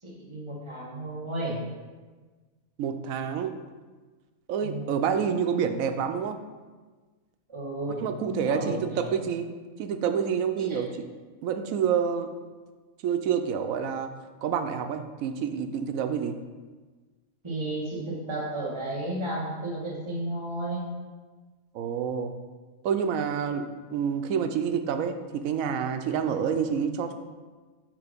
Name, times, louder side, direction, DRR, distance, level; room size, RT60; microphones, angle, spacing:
voice 1, 0.0-1.6 4.6-4.9 7.5-9.1 10.6-10.8 17.4-20.9, right 1 dB, 20° right, -6 dB, 1.6 m, -33 dB
voice 2, 2.8-3.5 4.5-6.4 8.0-9.5 9.8-10.9 11.4-12.3 13.0-14.1 14.4-16.4 21.7-22.3 22.8-27.1, right 7 dB, 85° right, 8 dB, 1.0 m, -28 dB
8.8 x 3.0 x 5.1 m, 1.3 s
omnidirectional pair, 1.4 m